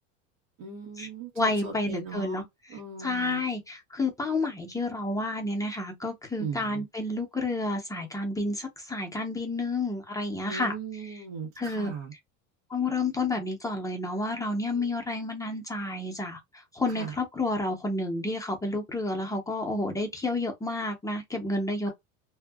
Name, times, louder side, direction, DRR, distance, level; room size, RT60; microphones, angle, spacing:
voice 1, 0.6-3.4 6.4-6.8 10.5-12.1 16.9-17.1 21.9-22.0, right 5 dB, 80° right, 1.3 m, -38 dB
voice 2, 1.4-2.4 3.0-10.7 11.6-11.9 12.7-16.4 16.7-21.9, left 2 dB, 10° left, 0.6 m, -30 dB
2.7 x 2.4 x 2.3 m
supercardioid pair, 115°, 37 cm